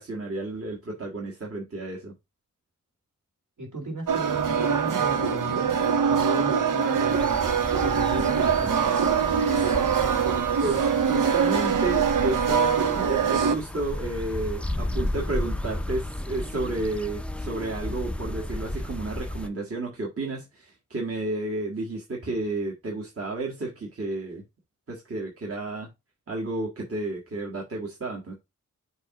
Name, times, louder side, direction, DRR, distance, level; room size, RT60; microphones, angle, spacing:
voice 1, 0.0-2.1 10.6-24.4 24.9-25.9 26.3-28.3, right 2 dB, 50° right, 1.6 m, -31 dB
voice 2, 3.6-7.4 7.8-9.0, right 1 dB, 70° right, 2.9 m, -35 dB
sound 1, 4.1-13.6, right 7 dB, 90° right, 0.9 m, -23 dB
sound 2, 7.1-19.5, left 1 dB, 5° left, 0.5 m, -34 dB
6.6 x 3.0 x 5.7 m
wide cardioid pair, 135°, 31 cm